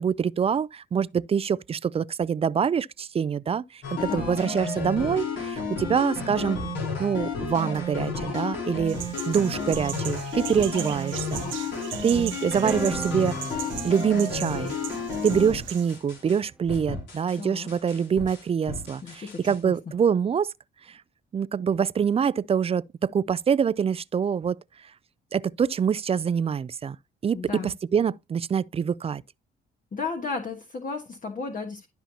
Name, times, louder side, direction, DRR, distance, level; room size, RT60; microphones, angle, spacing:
voice 1, 0.0-6.6 7.0-9.0 9.3-11.7 12.0-13.4 13.8-14.7 15.2-20.5 20.9-21.0 21.3-24.6 25.3-27.0 27.2-29.2, right 7 dB, 30° right, 0.3 m, -25 dB
sound 1, 3.8-16.4 16.7-17.4 17.7-19.6, left 3 dB, 70° left, 3.9 m, -32 dB
voice 2, 4.0-4.9 17.4-17.7 19.0-19.7 27.3-27.7 29.9-31.9, left 4 dB, 40° left, 1.3 m, -34 dB
sound 2, 8.9-15.9, right 12 dB, 75° right, 0.8 m, -38 dB
sound 3, 12.5-16.7, right 2 dB, 5° right, 1.0 m, -39 dB
12.5 x 5.6 x 2.8 m
cardioid pair, 90°, 20 cm